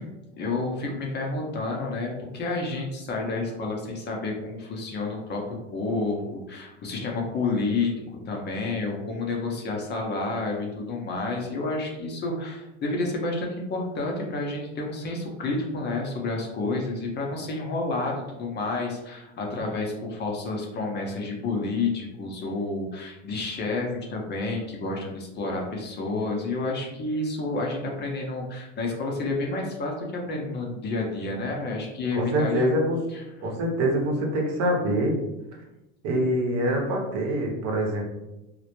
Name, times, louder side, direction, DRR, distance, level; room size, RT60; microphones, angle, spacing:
voice 1, 0.0-7.9 8.2-32.7, left 3 dB, 30° left, 0 dB, 0.5 m, -30 dB
voice 2, 32.1-33.0 33.4-35.2 36.0-38.1, right 1 dB, 55° right, 0 dB, 0.8 m, -25 dB
2.1 x 2.0 x 2.9 m, 0.98 s
hypercardioid pair, 95°, 33 cm